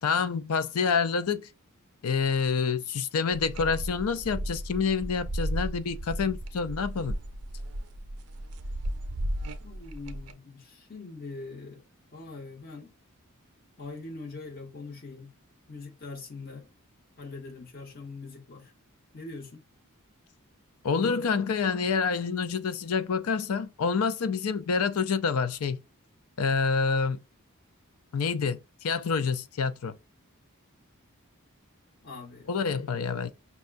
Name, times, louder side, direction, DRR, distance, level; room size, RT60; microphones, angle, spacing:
voice 1, 0.0-1.5 2.0-7.2 20.8-25.8 26.4-27.2 28.1-30.0 32.5-33.3, left 5 dB, 70° left, 0.5 m, -27 dB
sound 1, 3.3-10.3, right 1 dB, 80° right, 0.6 m, -35 dB
voice 2, 9.6-11.8 12.1-12.9 13.8-15.3 15.7-16.7 17.2-18.7 19.1-19.6 32.0-32.5, left 3 dB, 40° left, 1.2 m, -42 dB
5.4 x 2.3 x 2.5 m
head